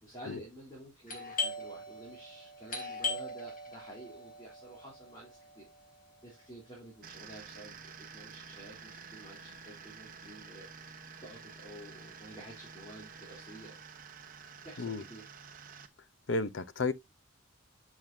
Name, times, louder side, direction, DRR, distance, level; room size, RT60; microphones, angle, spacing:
voice 1, 0.0-5.6 6.2-10.9 11.2-13.7 14.6-15.2, right 1 dB, 20° left, 3.5 m, -50 dB
Doorbell, 1.1-6.5, left 3 dB, 40° left, 2.3 m, -40 dB
sound 1, 7.0-15.9, right 5 dB, 40° right, 1.0 m, -50 dB
voice 2, 16.3-16.9, left 3 dB, 65° left, 0.7 m, -32 dB
8.8 x 6.1 x 2.7 m
head